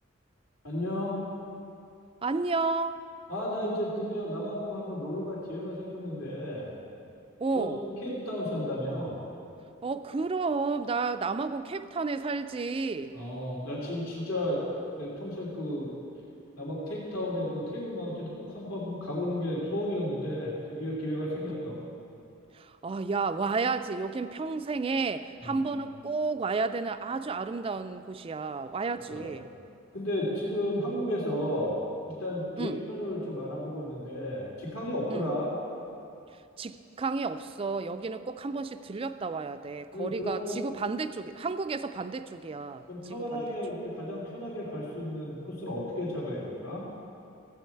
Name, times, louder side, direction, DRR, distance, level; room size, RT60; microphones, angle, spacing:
voice 1, 0.6-1.2 3.3-6.7 7.5-9.2 13.1-14.6 14.9-15.9 16.6-21.8 25.4-25.7 29.1-29.2 29.9-31.8 32.2-35.5 39.9-40.7 42.9-46.8, left 1 dB, 85° left, -5 dB, 2.9 m, -33 dB
voice 2, 2.2-3.0 7.4-7.8 9.8-13.2 21.5-21.6 22.5-29.5 32.6-32.8 35.1-35.3 36.6-43.5, right 4 dB, 25° right, 11 dB, 0.3 m, -32 dB
15.5 x 8.4 x 4.5 m, 2.6 s
head